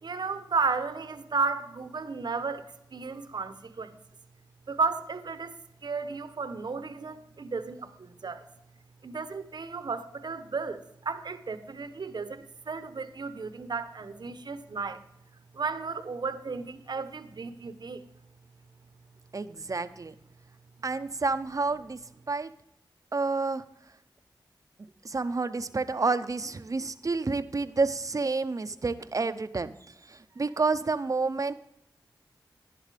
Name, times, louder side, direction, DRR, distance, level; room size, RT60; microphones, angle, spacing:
voice 1, 0.0-3.9 4.7-5.5 5.8-8.4 9.0-15.0 15.5-18.0, right 4 dB, 60° right, 11 dB, 0.9 m, -33 dB
voice 2, 19.3-20.1 20.8-22.5 23.1-23.6 25.0-29.7 30.1-31.5, right 3 dB, 45° right, 12 dB, 0.7 m, -29 dB
11.5 x 10.5 x 3.3 m, 0.83 s
cardioid pair, 45°, 8 cm